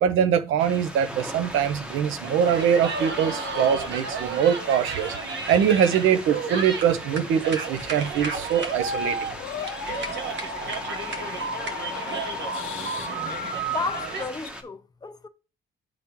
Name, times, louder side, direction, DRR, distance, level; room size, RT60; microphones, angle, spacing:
voice 1, 0.0-5.1 5.5-9.2, right 8 dB, 90° right, 0.6 m, -23 dB
sound 1, 0.6-14.6, equal, 5° right, 1.0 m, -39 dB
sound 2, 2.2-14.3, right 4 dB, 65° right, 1.1 m, -32 dB
sound 3, 3.0-4.3 8.6-14.5, left 9 dB, 85° left, 0.8 m, -37 dB
voice 2, 13.6-15.3, left 4 dB, 20° left, 0.6 m, -33 dB
10.5 x 3.6 x 2.9 m
cardioid pair, 90°, 20 cm